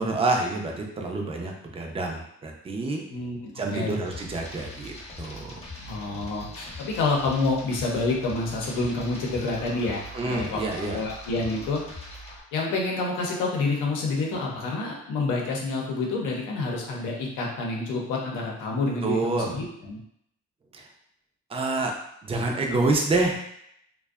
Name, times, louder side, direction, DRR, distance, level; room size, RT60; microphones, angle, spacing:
voice 1, 0.0-3.0 3.6-5.5 10.1-11.0 19.0-19.5 20.7-20.8 21.5-21.9 22.2-23.4, right 2 dB, 20° right, 1 dB, 0.4 m, -27 dB
sound 1, 4.1-12.4, left 1 dB, 20° left, 0.7 m, -41 dB
voice 2, 5.8-11.8 12.5-20.0, left 3 dB, 85° left, -2 dB, 0.7 m, -28 dB
2.5 x 2.2 x 2.3 m, 0.74 s
cardioid pair, 90°, 30 cm